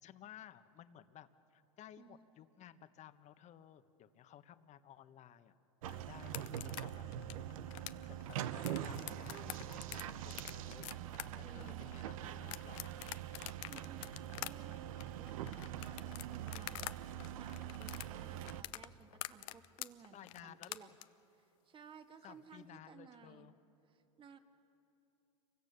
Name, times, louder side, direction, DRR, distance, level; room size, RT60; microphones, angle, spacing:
voice 1, 0.0-5.5 5.8-7.1 8.0-11.0 11.4-13.0 20.1-21.1 22.2-23.5, left 11 dB, 40° left, 11 dB, 1.3 m, -57 dB
sound 1, 5.8-18.6, right 11 dB, 75° right, 1.0 m, -44 dB
sound 2, 6.2-16.9 17.2-21.0, left 19 dB, 65° left, 0.8 m, -46 dB
voice 2, 11.4-12.0 13.3-16.8 17.3-20.2 20.4-20.9 21.3-23.5 23.9-24.4, right 6 dB, 30° right, 7 dB, 2.0 m, -58 dB
28.5 x 24.0 x 6.8 m, 2.8 s
hypercardioid pair, 95°, 18 cm